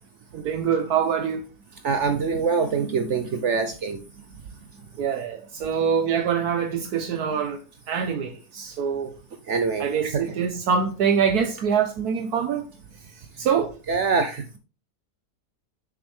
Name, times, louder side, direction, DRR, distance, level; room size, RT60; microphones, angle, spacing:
voice 1, 0.3-1.4 5.0-7.6 7.9-9.1 9.8-12.7 13.4-13.7, right 7 dB, 75° right, 1.3 m, -24 dB
voice 2, 1.8-4.0 9.5-10.2 13.9-14.4, right 5 dB, 60° right, 0.9 m, -24 dB
7.1 x 6.8 x 3.3 m
omnidirectional pair, 1.7 m